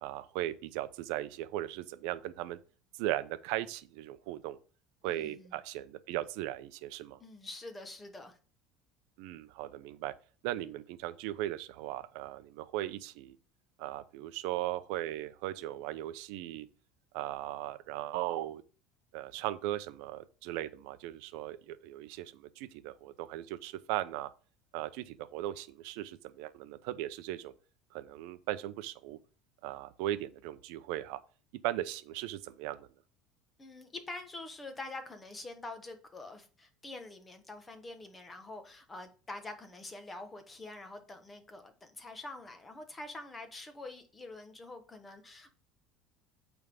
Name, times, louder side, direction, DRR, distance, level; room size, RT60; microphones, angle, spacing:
voice 1, 0.0-2.6 3.0-4.6 5.0-7.2 9.2-10.1 10.4-13.4 13.8-16.7 17.1-18.6 19.1-24.3 24.7-27.5 27.9-29.2 29.6-31.2 31.6-32.9, right 14 dB, 70° right, 0.7 m, -38 dB
voice 2, 5.0-5.5 7.2-8.4 33.6-45.5, left 2 dB, 15° left, 1.0 m, -46 dB
8.8 x 3.6 x 5.3 m
cardioid pair, 150°, 0 cm